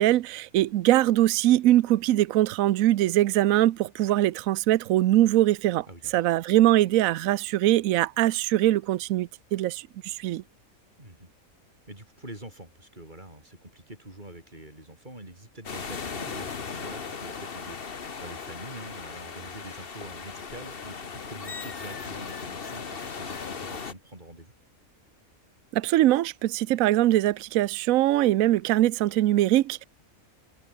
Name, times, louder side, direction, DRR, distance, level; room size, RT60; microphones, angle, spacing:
voice 1, 0.0-5.9 6.1-10.4 25.7-29.8, right 14 dB, 75° right, 1.0 m, -22 dB
voice 2, 5.9-6.4 11.0-11.3 11.9-24.5, right 1 dB, 30° right, 5.9 m, -45 dB
sound 1, 15.6-23.9, left 5 dB, 40° left, 1.5 m, -37 dB
omnidirectional pair, 1.5 m